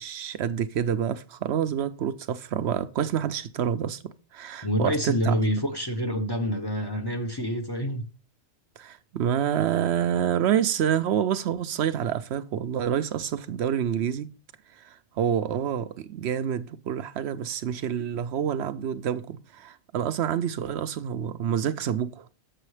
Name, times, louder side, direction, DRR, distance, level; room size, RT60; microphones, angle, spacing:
voice 1, 0.0-4.0 4.3-5.4 8.8-14.3 14.8-22.3, right 9 dB, 70° right, 0.8 m, -27 dB
voice 2, 4.6-8.0, equal, 25° left, 0.8 m, -27 dB
7.7 x 6.3 x 3.2 m
omnidirectional pair, 1.2 m